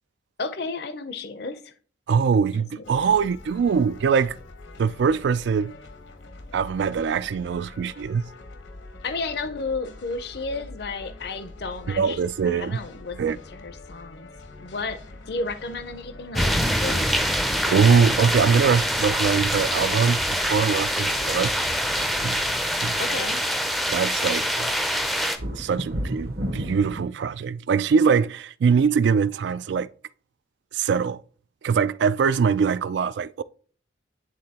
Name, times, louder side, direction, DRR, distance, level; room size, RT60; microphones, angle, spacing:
voice 1, 0.4-1.7 2.8-3.1 9.0-12.2 12.5-14.3 14.6-15.0 15.3-17.1 22.9-23.4, left 3 dB, 60° left, 0.5 m, -32 dB
voice 2, 2.1-4.4 4.8-5.8 6.5-8.2 11.9-12.8 13.1-13.4 17.7-21.6 22.2-22.4 22.8-23.0 23.9-24.7 25.6-29.9 30.7-31.2 31.6-33.4, right 6 dB, 70° right, 0.3 m, -22 dB
sound 1, 2.8-22.6, left 2 dB, 80° left, 0.9 m, -44 dB
sound 2, 16.4-25.4, equal, ahead, 0.4 m, -24 dB
sound 3, 24.4-27.0, equal, 55° right, 0.9 m, -31 dB
9.7 x 3.7 x 2.8 m
head